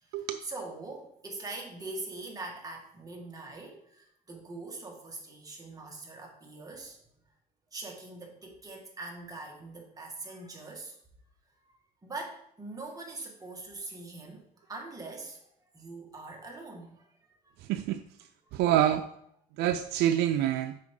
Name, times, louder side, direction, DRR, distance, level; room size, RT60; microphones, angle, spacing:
voice 1, 0.4-7.0 7.7-11.0 11.7-15.4 15.7-17.1, right 3 dB, 20° right, 1.9 m, -42 dB
voice 2, 17.7-18.0 18.5-19.0 19.6-20.8, right 11 dB, 85° right, 0.4 m, -26 dB
7.3 x 5.3 x 3.8 m
cardioid pair, 110°, 17 cm